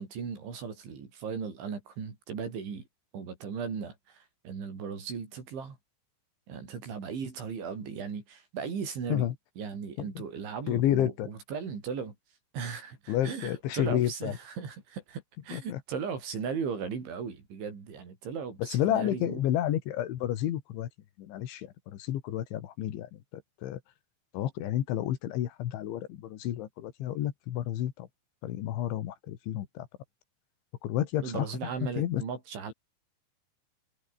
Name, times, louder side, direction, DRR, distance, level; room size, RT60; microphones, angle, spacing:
voice 1, 0.0-2.8 3.1-5.8 6.5-9.3 9.6-12.1 12.5-19.4 31.2-32.7, right 6 dB, 70° right, 7.8 m, -37 dB
voice 2, 10.7-11.3 13.1-14.3 15.5-15.8 18.6-20.9 21.2-21.7 22.0-23.2 23.6-23.8 24.3-28.1 28.4-29.9 30.8-31.5 31.8-32.2, left 12 dB, 75° left, 4.1 m, -30 dB
omnidirectional pair, 5.5 m